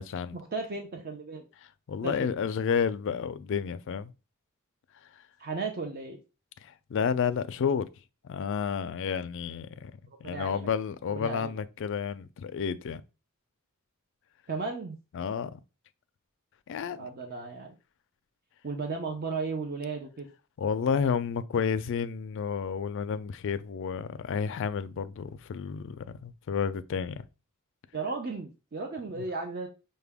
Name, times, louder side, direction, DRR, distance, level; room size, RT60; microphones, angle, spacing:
voice 1, 0.0-0.4 1.9-4.1 6.6-7.9 8.2-9.9 10.2-13.0 15.1-15.6 16.7-17.1 20.6-27.2, left 6 dB, 60° left, 0.3 m, -31 dB
voice 2, 0.5-1.4 2.0-2.3 5.4-6.2 10.2-10.7 11.1-11.6 14.5-15.0 17.0-17.7 18.6-20.3 27.9-29.7, right 4 dB, 45° right, 0.6 m, -35 dB
5.6 x 2.2 x 3.4 m
head